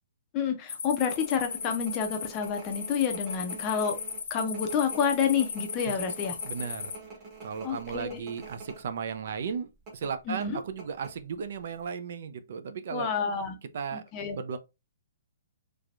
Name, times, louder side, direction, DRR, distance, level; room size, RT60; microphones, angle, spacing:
voice 1, 0.3-4.0 4.3-6.4 7.6-8.2 10.3-10.6 12.9-13.6 13.9-14.4, left 7 dB, 20° left, 0.5 m, -29 dB
sound 1, 0.7-7.0, left 6 dB, 70° left, 0.8 m, -37 dB
sound 2, 1.1-8.8 9.1-9.2 9.9-11.5 11.8-11.9, right 4 dB, 15° right, 1.0 m, -46 dB
voice 2, 6.4-6.9 7.4-13.1 13.7-14.0 14.3-14.6, right 6 dB, 50° right, 0.5 m, -35 dB
3.3 x 3.3 x 2.5 m
hypercardioid pair, 175°, 0 cm